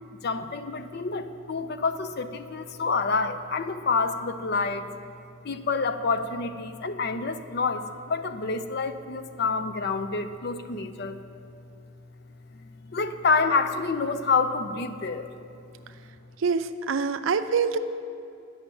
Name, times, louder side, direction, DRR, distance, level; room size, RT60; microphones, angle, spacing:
voice 1, 0.2-4.9 5.4-11.2 12.9-15.3, left 4 dB, 50° left, 10 dB, 0.5 m, -27 dB
voice 2, 16.4-17.8, right 5 dB, 75° right, 10 dB, 0.5 m, -25 dB
10.0 x 5.7 x 8.4 m, 2.6 s
head